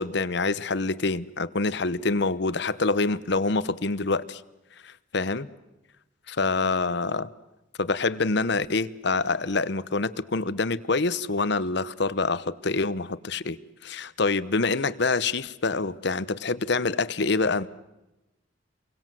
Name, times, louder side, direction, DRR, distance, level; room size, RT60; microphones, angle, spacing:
voice 1, 0.0-4.4 4.8-5.5 6.4-7.3 7.8-13.6 13.8-17.7, left 3 dB, 60° left, 1.0 m, -26 dB
30.0 x 23.5 x 7.7 m
head